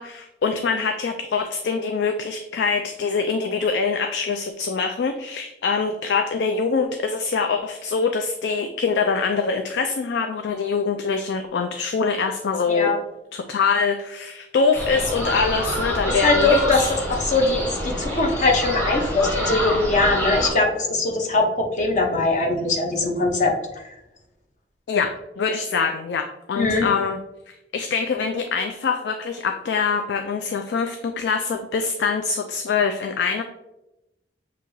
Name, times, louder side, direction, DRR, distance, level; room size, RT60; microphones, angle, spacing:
voice 1, 0.0-12.9 13.3-16.9 24.9-27.2 27.5-33.4, left 5 dB, 75° left, 6 dB, 0.3 m, -24 dB
sound 1, 14.7-20.5, equal, 10° left, 1.0 m, -26 dB
voice 2, 16.2-16.8 17.1-23.8 26.6-26.9, left 3 dB, 45° left, 2 dB, 0.8 m, -21 dB
6.6 x 2.8 x 2.6 m, 0.93 s
head